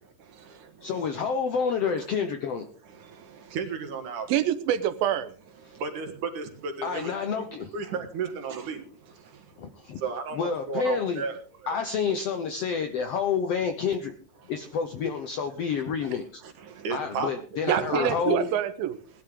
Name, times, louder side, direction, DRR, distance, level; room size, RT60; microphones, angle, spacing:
voice 1, 0.0-1.1 2.0-2.1 2.8-4.3 5.6-7.4 7.7-11.8 14.4-14.5 15.7-16.1 16.4-18.5 19.1-19.2, right 5 dB, 65° right, 5 dB, 3.1 m, -35 dB
voice 2, 0.8-2.7 6.8-7.7 9.6-10.0 10.3-11.2 11.7-14.1 14.5-16.4 16.9-18.4, left 6 dB, 75° left, 8 dB, 1.4 m, -29 dB
voice 3, 4.3-5.3 17.7-19.0, right 11 dB, 85° right, 12 dB, 2.8 m, -26 dB
19.5 x 11.5 x 3.7 m, 0.41 s
omnidirectional pair, 4.1 m